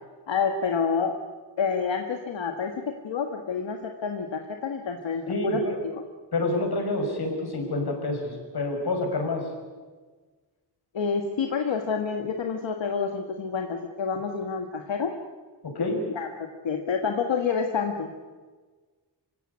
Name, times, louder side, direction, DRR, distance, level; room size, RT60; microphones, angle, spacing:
voice 1, 0.3-1.2 1.6-5.6 5.9-6.0 10.9-15.1 15.8-18.1, left 5 dB, 85° left, 4 dB, 1.7 m, -28 dB
voice 2, 5.3-5.8 6.3-9.4 15.6-16.0, left 2 dB, 60° left, 3 dB, 6.2 m, -28 dB
26.5 x 16.5 x 9.7 m, 1.4 s
wide cardioid pair, 130°, 44 cm